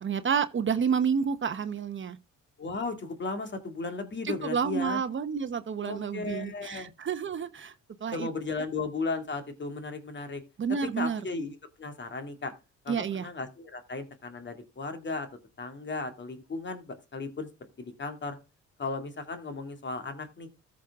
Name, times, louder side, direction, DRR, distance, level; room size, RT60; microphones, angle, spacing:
voice 1, 0.0-2.2 4.2-7.7 8.0-8.3 10.6-11.2 12.9-13.3, right 6 dB, 40° right, 0.9 m, -29 dB
voice 2, 2.6-5.0 5.8-6.9 8.1-10.4 10.8-12.5 12.8-15.3 15.6-17.5 17.8-18.4 18.8-20.6, left 3 dB, 35° left, 2.3 m, -35 dB
14.0 x 6.2 x 3.6 m
cardioid pair, 90°, 30 cm